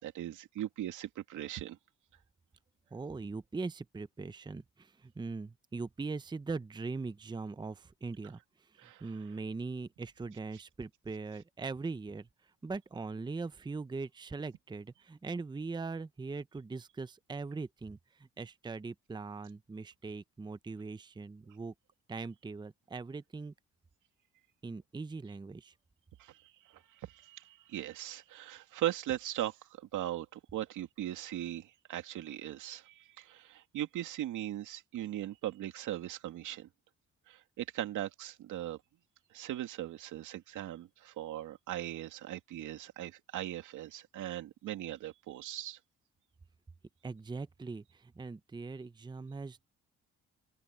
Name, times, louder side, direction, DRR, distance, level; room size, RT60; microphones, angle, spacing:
voice 1, 0.0-1.8 8.8-9.4 26.2-36.7 37.3-38.8 39.3-45.8, right 13 dB, 85° right, 2.6 m, -39 dB
voice 2, 2.9-8.4 9.0-12.3 12.6-18.0 18.4-21.7 22.1-23.5 24.6-25.7 47.0-49.7, right 4 dB, 15° right, 0.7 m, -41 dB
open air
cardioid pair, 90°, 30 cm